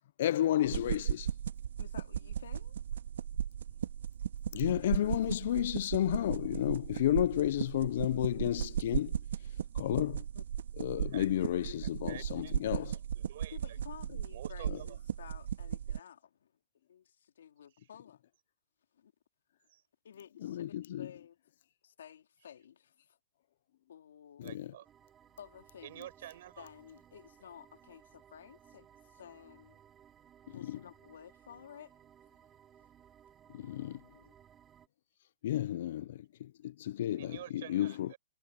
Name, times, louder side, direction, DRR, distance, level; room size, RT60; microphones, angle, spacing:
voice 1, 0.2-1.3 4.5-9.1 9.7-10.2 10.8-13.0 14.7-14.8 20.4-21.1 24.4-24.7 30.5-30.8 33.5-34.0 35.4-38.1, left 12 dB, 60° left, 0.4 m, -32 dB
sound 1, 0.6-16.0, right 9 dB, 85° right, 1.7 m, -37 dB
voice 2, 1.8-2.8 10.3-10.4 13.5-16.5 16.9-18.2 18.9-19.1 20.0-20.6 21.0-21.4 21.8-22.9 23.9-24.5 25.4-26.1 26.6-29.8 30.5-31.9, left 9 dB, 85° left, 3.2 m, -53 dB
voice 3, 12.1-12.5 13.2-13.8 14.3-15.0 19.7-19.8 24.4-24.9 25.8-26.7 37.2-38.2, right 13 dB, 55° right, 7.0 m, -48 dB
sound 2, 24.8-34.9, right 9 dB, 15° right, 2.6 m, -61 dB
hypercardioid pair, 160°, 0 cm